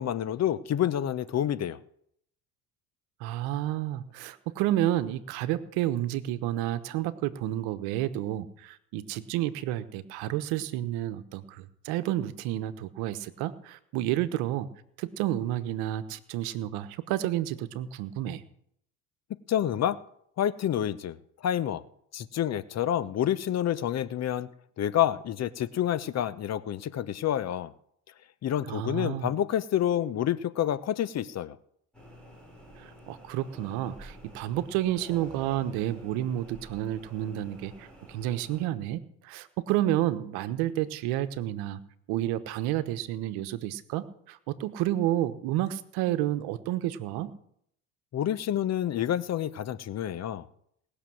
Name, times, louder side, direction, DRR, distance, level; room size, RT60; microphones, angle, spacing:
voice 1, 0.0-1.8 19.5-20.0 20.4-21.2 21.4-21.8 22.1-24.5 24.8-27.7 28.4-31.6 48.1-50.5, left 11 dB, 40° left, 16 dB, 0.9 m, -28 dB
voice 2, 3.2-14.7 15.0-18.4 28.7-29.4 32.8-41.8 42.1-47.3, right 13 dB, 70° right, 13 dB, 1.2 m, -30 dB
sound 1, 31.9-38.6, right 1 dB, 5° left, 7.1 m, -49 dB
19.0 x 6.7 x 7.8 m, 0.69 s
hypercardioid pair, 75°, 39 cm